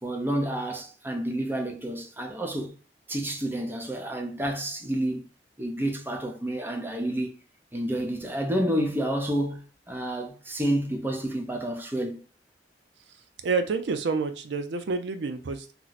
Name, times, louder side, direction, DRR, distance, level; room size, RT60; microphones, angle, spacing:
voice 1, 0.0-2.7 3.1-5.2 5.6-7.4 7.7-12.2, right 1 dB, 10° right, 0.6 m, -29 dB
voice 2, 13.4-15.7, right 4 dB, 80° right, 0.4 m, -28 dB
2.9 x 2.0 x 3.9 m
head